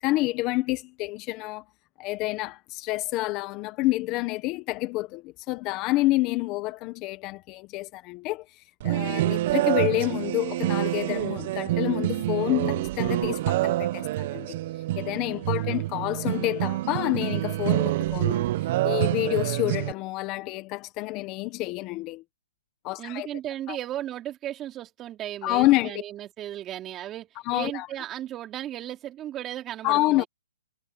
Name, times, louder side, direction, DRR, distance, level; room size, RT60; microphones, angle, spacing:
voice 1, 0.0-1.6 2.0-14.6 15.0-18.4 18.8-22.2 22.8-23.3 23.7-23.8 25.4-25.9 27.5-27.9 29.8-30.2, left 19 dB, 25° left, 1.4 m, -28 dB
sound 1, 8.8-19.9, right 15 dB, 40° right, 1.4 m, -27 dB
voice 2, 15.4-15.9 23.0-30.3, right 12 dB, 20° right, 4.1 m, -36 dB
hypercardioid pair, 155°, 0 cm